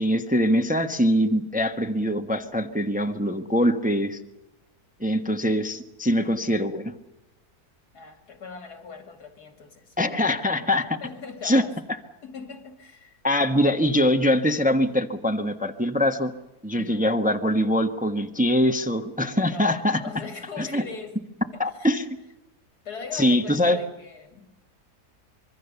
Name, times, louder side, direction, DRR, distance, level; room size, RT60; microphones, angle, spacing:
voice 1, 0.0-4.2 5.0-6.9 10.0-11.0 11.4-11.6 13.2-16.3 16.6-20.0 20.6-20.8 21.6-22.2 23.1-23.8, equal, 5° right, 1.1 m, -23 dB
voice 2, 6.0-6.5 7.9-9.9 11.0-11.7 12.2-13.2 16.7-17.1 19.4-21.2 21.5-21.9 22.8-24.6, left 5 dB, 80° left, 3.2 m, -40 dB
25.5 x 22.5 x 7.0 m
omnidirectional pair, 1.7 m